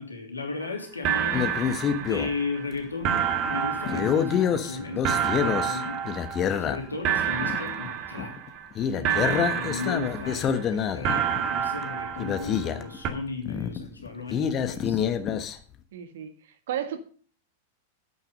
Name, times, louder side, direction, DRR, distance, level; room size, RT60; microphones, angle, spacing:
voice 1, 0.0-1.5 1.8-6.0 6.6-8.4 8.9-15.0, left 3 dB, 85° left, 3 dB, 2.9 m, -35 dB
sound 1, 0.6-0.7 1.0-2.7 3.0-6.8 7.0-8.7 9.0-10.7 11.0-12.8 13.0-13.1, right 8 dB, 40° right, 2.0 m, -29 dB
sound 2, 1.3-2.3 2.9-3.1 3.9-7.1 7.4-7.6 7.9-8.0 8.2-8.5 8.8-11.4 11.9-12.0 12.2-13.0 13.5-15.6, left 8 dB, 30° left, 1.2 m, -27 dB
voice 2, 15.9-17.0, right 10 dB, 60° right, 9 dB, 1.7 m, -34 dB
9.6 x 9.0 x 5.2 m, 0.43 s
figure-of-eight pair, 95°, 0 cm